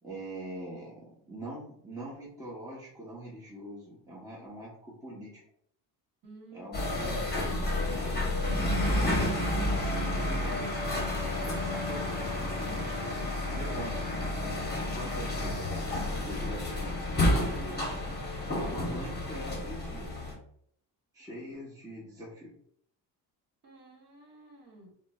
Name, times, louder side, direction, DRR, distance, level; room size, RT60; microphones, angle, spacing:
voice 1, 0.0-5.4 6.5-10.7 11.4-13.0 13.4-15.9 16.2-18.0 18.6-20.2 21.1-22.5, right 1 dB, 5° right, -6 dB, 0.9 m, -44 dB
voice 2, 6.2-6.9 23.6-24.9, right 3 dB, 45° right, -1 dB, 1.3 m, -52 dB
sound 1, 6.7-20.3, left 1 dB, 20° left, 1.0 m, -30 dB
3.9 x 2.1 x 2.3 m, 0.65 s
cardioid pair, 95°, 47 cm